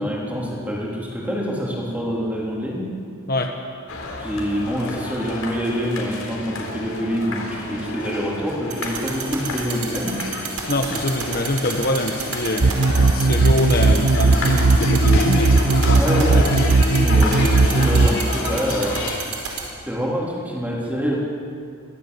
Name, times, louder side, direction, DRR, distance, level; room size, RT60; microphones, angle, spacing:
voice 1, 0.0-3.0 4.2-10.2 15.9-16.5 16.9-19.0 19.8-21.1, equal, 5° right, -3 dB, 3.7 m, -26 dB
sound 1, 3.9-19.2, left 2 dB, 70° left, 4.1 m, -30 dB
sound 2, 8.7-19.6, right 8 dB, 90° right, 4.8 m, -28 dB
voice 2, 10.7-16.0 16.3-16.7, left 1 dB, 45° left, 3 dB, 1.3 m, -25 dB
sound 3, 12.6-18.1, right 3 dB, 75° right, 1.0 m, -17 dB
23.5 x 16.5 x 8.5 m, 2.3 s
head